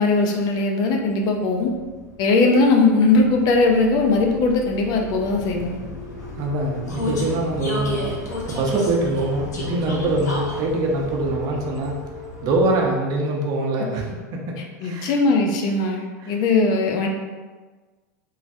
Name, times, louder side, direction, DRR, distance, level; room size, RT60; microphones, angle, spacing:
voice 1, 0.0-1.7 2.2-5.8 14.8-17.1, left 3 dB, 50° left, 2 dB, 0.5 m, -19 dB
Vehicle, 1.2-13.1, left 2 dB, 90° left, 0.7 m, -34 dB
voice 2, 6.4-8.1 8.5-12.0 12.4-15.2 16.2-16.3, right 2 dB, 45° right, 0 dB, 0.6 m, -24 dB
3.1 x 2.3 x 2.6 m, 1.4 s
hypercardioid pair, 100°, 9 cm